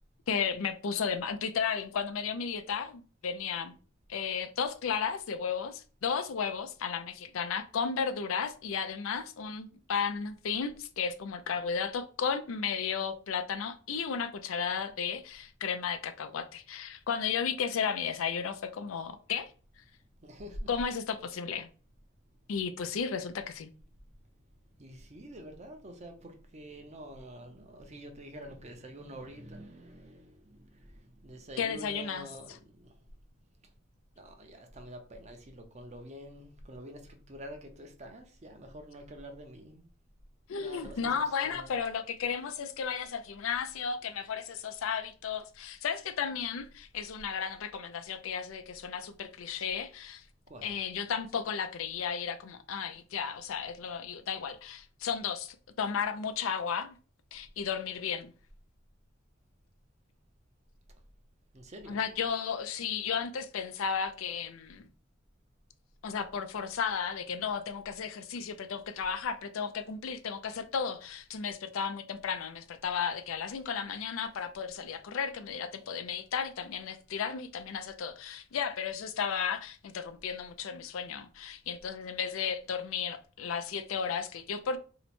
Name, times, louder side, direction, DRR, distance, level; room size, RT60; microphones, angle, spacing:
voice 1, 0.3-3.8 4.1-19.5 20.7-21.7 22.5-23.7 31.6-32.3 40.5-50.2 50.6-57.0 57.3-58.3 61.9-64.9 66.0-84.8, left 6 dB, 85° left, 0.4 m, -34 dB
voice 2, 20.1-20.7 22.2-22.5 24.2-33.2 33.6-33.7 34.2-39.9 40.6-41.7 50.5-50.8 61.5-62.0, equal, 35° right, 0.7 m, -47 dB
2.9 x 2.1 x 4.1 m
head